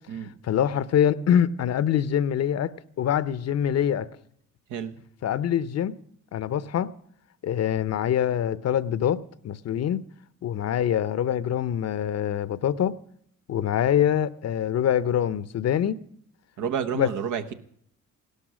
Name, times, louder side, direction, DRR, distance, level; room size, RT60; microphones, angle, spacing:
voice 1, 0.4-2.7 3.0-4.1 5.2-5.9 6.3-6.9 7.4-10.0 10.4-13.0 13.5-16.0 17.0-17.1, left 9 dB, 55° left, 0.7 m, -24 dB
voice 2, 4.7-5.0 16.6-17.5, right 7 dB, 80° right, 1.2 m, -30 dB
16.5 x 12.0 x 6.1 m
cardioid pair, 90°, 30 cm